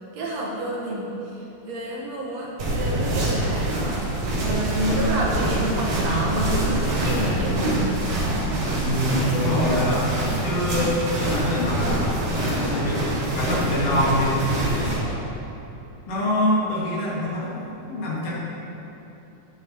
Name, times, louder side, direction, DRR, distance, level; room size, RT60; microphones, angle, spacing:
voice 1, 0.1-8.0, right 1 dB, 60° right, -3 dB, 2.3 m, -29 dB
sound 1, 2.6-15.0, right 1 dB, 75° right, 4.0 m, -25 dB
voice 2, 8.8-13.0 13.3-14.4 14.7-15.3 16.1-18.3, left 1 dB, 80° left, -6 dB, 3.4 m, -25 dB
10.0 x 10.0 x 4.2 m, 2.9 s
omnidirectional pair, 3.7 m